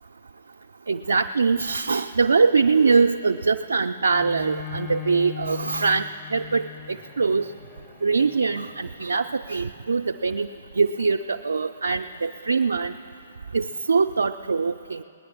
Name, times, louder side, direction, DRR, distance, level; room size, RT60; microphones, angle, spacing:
voice 1, 0.9-6.1 6.3-6.7 7.2-7.4 8.0-10.5 10.8-12.9 13.5-15.0, right 4 dB, 65° right, 5 dB, 0.4 m, -22 dB
Bowed string instrument, 4.1-9.3, left 11 dB, 10° left, 0.4 m, -39 dB
20.5 x 9.8 x 5.5 m, 2.7 s
figure-of-eight pair, 120°, 0 cm